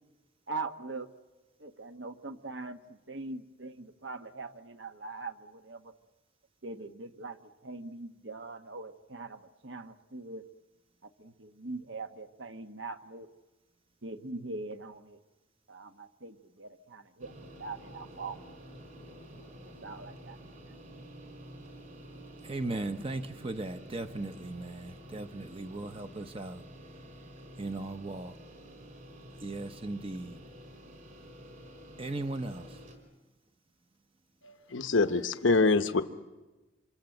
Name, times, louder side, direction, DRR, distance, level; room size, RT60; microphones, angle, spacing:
voice 1, 0.5-1.1 1.6-5.9 6.6-10.4 11.0-13.3 14.0-15.2 15.7-18.4 19.6-20.7, right 3 dB, 70° right, 8 dB, 1.3 m, -42 dB
sound 1, 17.2-33.0, equal, 45° right, 4.9 m, -50 dB
voice 2, 22.4-26.6 27.6-28.4 29.3-30.4 32.0-32.8, right 2 dB, 30° right, 8 dB, 0.8 m, -37 dB
voice 3, 34.4-36.0, left 3 dB, 90° left, 9 dB, 1.0 m, -25 dB
27.0 x 26.0 x 7.9 m, 1.2 s
head